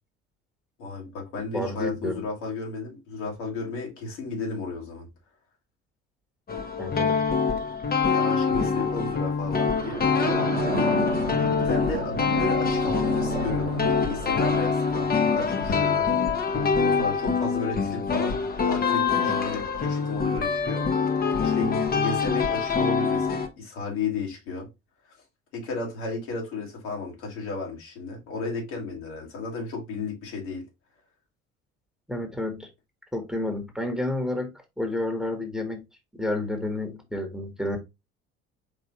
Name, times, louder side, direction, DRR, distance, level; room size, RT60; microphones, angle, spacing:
voice 1, 0.8-5.1 8.1-10.0 11.6-16.1 16.5-18.4 18.6-20.9 21.4-24.7 25.5-30.6, left 4 dB, 65° left, 2.0 m, -33 dB
voice 2, 1.5-2.2 6.8-7.2 32.1-32.7 33.1-34.5 34.8-35.8 36.1-37.8, left 1 dB, ahead, 1.2 m, -30 dB
sound 1, 6.5-23.5, left 5 dB, 25° left, 0.9 m, -25 dB
sound 2, 9.6-14.7, right 5 dB, 90° right, 0.6 m, -32 dB
4.7 x 3.5 x 3.0 m
figure-of-eight pair, 60°, 35 cm